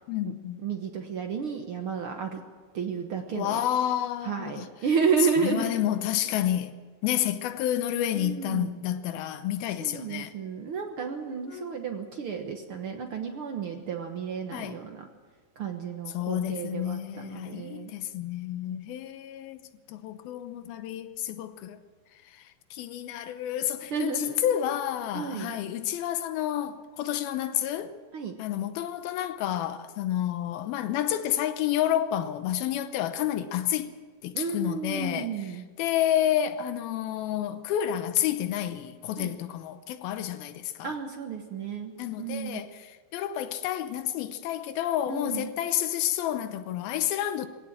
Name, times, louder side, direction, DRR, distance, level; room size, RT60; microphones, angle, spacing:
voice 1, 0.1-0.6 3.3-4.7 5.4-6.8 7.0-10.3 11.5-11.8 14.5-14.8 16.1-19.6 19.9-21.8 22.3-27.9 28.4-33.9 34.2-35.5 35.8-41.0 42.0-47.5, left 11 dB, 85° left, 2.8 m, -30 dB
voice 2, 0.6-2.4 2.7-3.6 4.2-5.7 8.1-8.7 9.8-15.1 15.6-17.9 23.9-24.5 25.1-25.5 28.1-28.3 34.3-35.6 39.2-39.3 40.8-41.9 42.2-42.6 45.1-45.5, right 6 dB, 75° right, 1.2 m, -32 dB
21.0 x 17.0 x 7.4 m
omnidirectional pair, 4.2 m